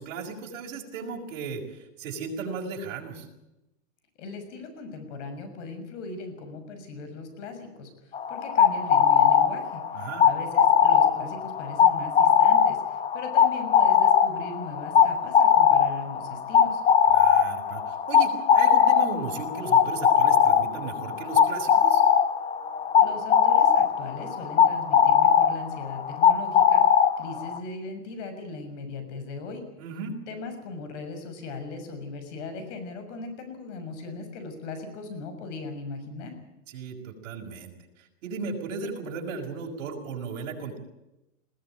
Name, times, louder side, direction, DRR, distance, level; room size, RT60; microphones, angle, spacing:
voice 1, 0.0-3.2 9.9-10.3 17.1-22.0 29.8-30.1 36.7-37.7 38.2-40.8, right 4 dB, 65° right, 2 dB, 5.9 m, -36 dB
voice 2, 4.2-7.9 8.3-16.8 23.0-29.6 30.3-36.3, left 3 dB, 60° left, 8 dB, 6.5 m, -38 dB
sound 1, 8.1-27.6, left 8 dB, 15° left, 1.0 m, -20 dB
21.0 x 17.0 x 9.1 m, 0.93 s
supercardioid pair, 150°, 40 cm